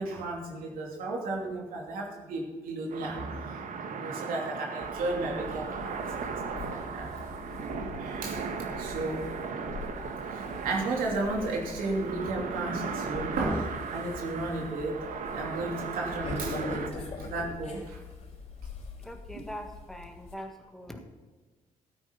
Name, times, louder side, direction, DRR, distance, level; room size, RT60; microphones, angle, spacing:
voice 1, 0.0-3.3 3.9-7.1 8.0-8.4 8.8-9.2 10.3-15.0 15.3-18.0, right 2 dB, 85° right, -1 dB, 2.8 m, -34 dB
sound 1, 2.9-16.9, right 5 dB, 65° right, 1.2 m, -37 dB
sound 2, 4.8-20.3, left 3 dB, 50° left, 4.3 m, -43 dB
voice 2, 19.0-21.0, equal, ahead, 4 dB, 1.7 m, -42 dB
13.0 x 9.5 x 5.3 m, 1.3 s
cardioid pair, 100°, 14 cm